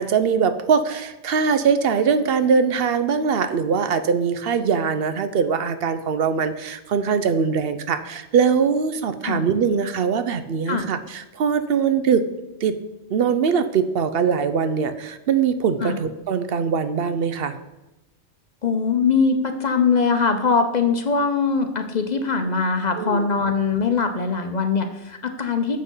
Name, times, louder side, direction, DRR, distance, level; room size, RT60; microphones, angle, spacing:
voice 1, 0.0-12.2 12.6-12.7 13.1-17.6 23.0-23.3, right 6 dB, 65° right, 11 dB, 0.8 m, -22 dB
voice 2, 18.6-25.8, left 5 dB, 45° left, 6 dB, 0.7 m, -22 dB
7.5 x 5.9 x 5.5 m, 1.0 s
omnidirectional pair, 1.1 m